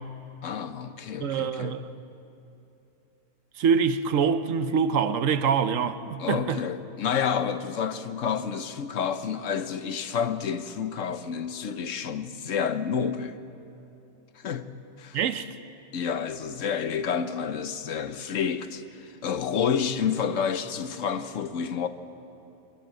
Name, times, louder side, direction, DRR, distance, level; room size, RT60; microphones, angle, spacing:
voice 1, 0.4-1.8 6.2-13.4 14.3-14.7 15.0-15.2 15.9-21.9, left 7 dB, 75° left, 1.2 m, -29 dB
voice 2, 1.2-1.9 3.6-6.6 15.1-15.6, right 6 dB, 80° right, 1.2 m, -25 dB
24.0 x 17.0 x 7.6 m
omnidirectional pair, 1.3 m